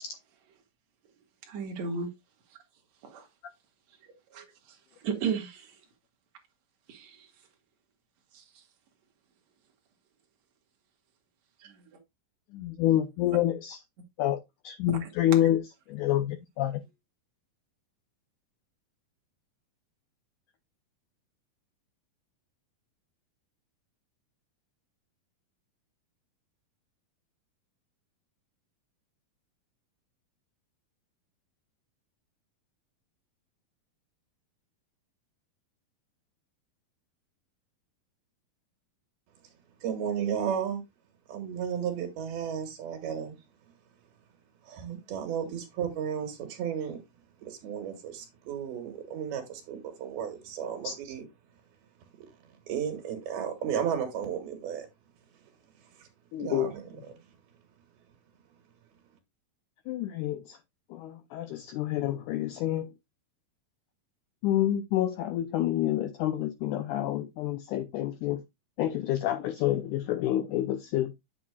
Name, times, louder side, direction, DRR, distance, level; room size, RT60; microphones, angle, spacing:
voice 1, 1.5-2.1 3.0-3.3 4.0-5.8 6.9-7.3 8.3-8.4 11.6-11.9 15.0-15.4, right 5 dB, 55° right, 2.7 m, -36 dB
voice 2, 12.5-13.8 14.2-16.8 50.8-50.9 56.3-56.7 59.9-60.6 60.9-62.9 64.4-68.4 68.8-71.1, left 12 dB, 80° left, 1.8 m, -28 dB
voice 3, 39.8-40.8 41.3-43.5 44.6-47.0 47.4-51.3 52.2-52.3 52.7-54.9 55.8-56.1 56.4-57.2, right 8 dB, 85° right, 3.4 m, -34 dB
8.4 x 7.7 x 2.3 m
omnidirectional pair, 4.3 m